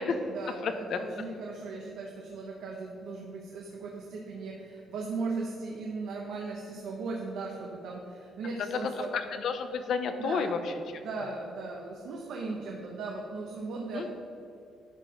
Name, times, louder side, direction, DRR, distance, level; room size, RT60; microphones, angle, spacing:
voice 1, 0.0-9.1 10.2-10.5 11.0-14.1, right 3 dB, 75° right, -1 dB, 0.9 m, -37 dB
voice 2, 0.6-1.0 9.1-10.7 14.0-14.1, left 5 dB, 55° left, 8 dB, 0.7 m, -31 dB
10.5 x 4.4 x 5.1 m, 2.6 s
cardioid pair, 165°, 0 cm